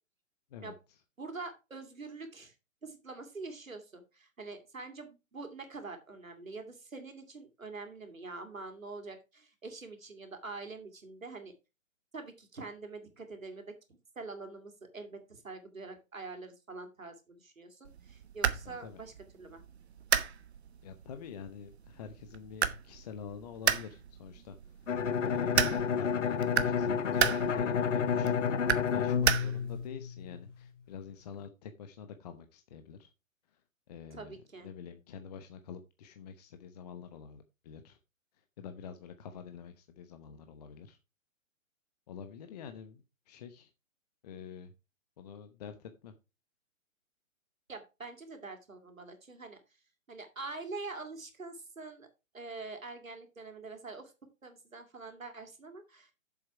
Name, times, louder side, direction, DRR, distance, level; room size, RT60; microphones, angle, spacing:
voice 1, 1.2-2.5 2.8-11.5 12.1-13.7 14.2-19.6 34.1-34.7 47.7-49.6 50.1-52.1 52.3-54.1 54.4-56.1, right 3 dB, 80° right, 6 dB, 2.8 m, -45 dB
sound 1, 17.8-29.9, right 8 dB, 55° right, 1.1 m, -34 dB
voice 2, 18.6-19.0 20.8-24.6 25.2-28.5 28.9-33.1 33.9-38.0 38.6-41.0 42.1-43.7 44.2-44.7 45.2-46.1, left 7 dB, 30° left, 8 dB, 0.8 m, -47 dB
Bowed string instrument, 24.9-30.5, left 7 dB, 65° left, 0.8 m, -30 dB
7.7 x 7.3 x 4.7 m, 0.27 s
figure-of-eight pair, 130°, 40 cm